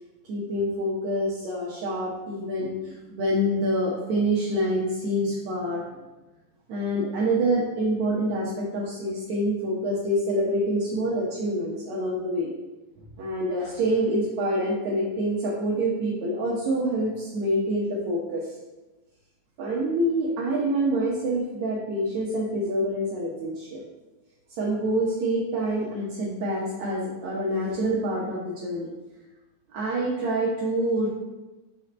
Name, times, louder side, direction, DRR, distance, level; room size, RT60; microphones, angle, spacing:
voice 1, 0.3-5.8 6.7-12.5 13.2-18.5 19.6-23.8 24.6-28.9 29.7-31.1, right 1 dB, 70° right, -5 dB, 2.3 m, -26 dB
5.6 x 4.2 x 5.4 m, 1.1 s
omnidirectional pair, 3.4 m